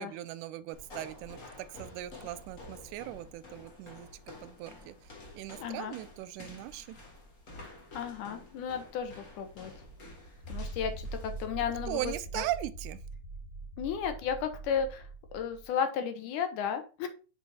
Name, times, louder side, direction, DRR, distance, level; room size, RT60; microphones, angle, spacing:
voice 1, 0.0-4.1 4.4-7.0 11.9-13.0, right 14 dB, 85° right, 2.0 m, -39 dB
sound 1, 0.7-11.5, left 2 dB, 45° left, 1.0 m, -50 dB
voice 2, 5.6-6.0 7.9-9.7 10.5-12.4 13.8-15.1 15.3-17.1, left 7 dB, 90° left, 2.4 m, -34 dB
sound 2, 10.4-15.7, right 3 dB, 75° left, 2.7 m, -42 dB
6.2 x 4.0 x 4.1 m
omnidirectional pair, 3.5 m